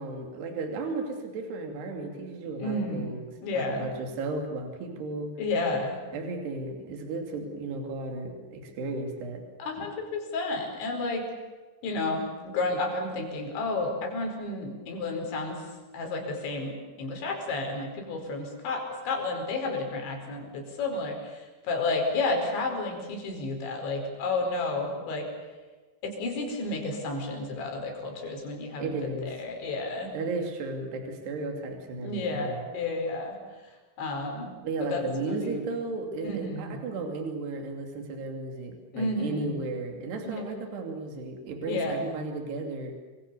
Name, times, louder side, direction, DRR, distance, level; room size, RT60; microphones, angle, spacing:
voice 1, 0.0-3.3 3.5-5.3 6.1-9.4 9.8-9.9 28.8-29.3 30.1-32.6 34.6-42.9, right 3 dB, 65° right, 4 dB, 4.9 m, -34 dB
voice 2, 2.6-3.1 3.4-3.9 5.4-6.0 9.6-11.2 11.8-15.6 15.9-25.3 26.0-29.0 29.3-30.1 32.0-33.4 34.0-34.5 34.8-35.0 35.3-35.6 36.2-36.7 38.9-39.5 40.3-40.4 41.7-42.1, left 2 dB, 75° left, 3 dB, 7.1 m, -31 dB
27.5 x 25.0 x 7.0 m, 1.3 s
omnidirectional pair, 5.2 m